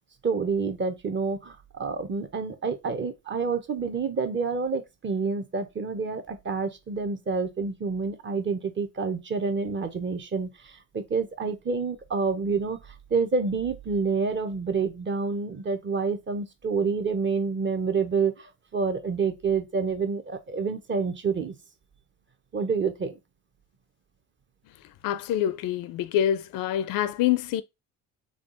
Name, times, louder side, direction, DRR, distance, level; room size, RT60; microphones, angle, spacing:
voice 1, 0.2-12.8 13.1-21.5 22.5-23.1, right 5 dB, 30° right, 0.9 m, -28 dB
voice 2, 25.0-27.6, left 11 dB, 65° left, 0.5 m, -26 dB
3.6 x 2.4 x 3.8 m
supercardioid pair, 80°, 36 cm